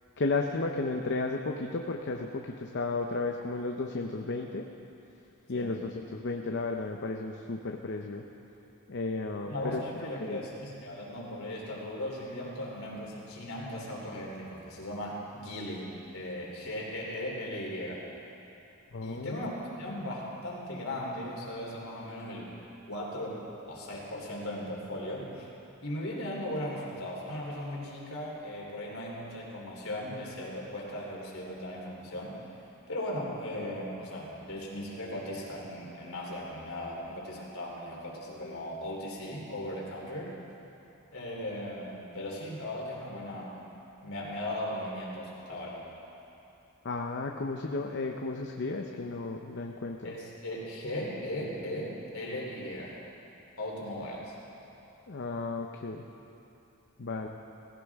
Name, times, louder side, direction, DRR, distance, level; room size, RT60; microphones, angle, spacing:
voice 1, 0.2-4.7 5.5-8.2 8.9-9.8 10.2-10.4 18.9-19.5 46.8-50.2 55.1-56.1 57.0-57.3, left 3 dB, 55° left, 3 dB, 0.7 m, -33 dB
voice 2, 9.4-18.0 19.0-19.5 19.8-22.5 22.9-25.5 25.8-32.4 32.9-40.3 41.1-43.7 44.0-45.8 50.0-53.0 53.6-54.3, left 1 dB, 70° left, -3 dB, 3.4 m, -37 dB
18.5 x 16.5 x 3.6 m, 2.9 s
head